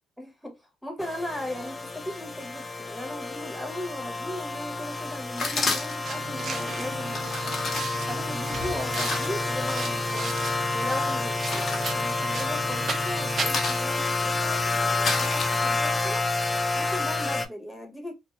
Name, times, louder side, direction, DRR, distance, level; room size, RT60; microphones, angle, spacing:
voice 1, 0.2-7.6 8.1-10.4 10.7-16.3 16.7-18.1, left 1 dB, 5° left, 0.8 m, -37 dB
sound 1, 1.0-17.5, left 3 dB, 25° left, 0.3 m, -29 dB
sound 2, 5.4-6.2 7.0-10.0 10.3-10.9 11.2-12.7 13.0-16.0, left 3 dB, 55° left, 0.8 m, -32 dB
sound 3, 6.0-13.5, right 5 dB, 55° right, 0.4 m, -36 dB
2.5 x 2.2 x 2.3 m
cardioid pair, 90°, 0 cm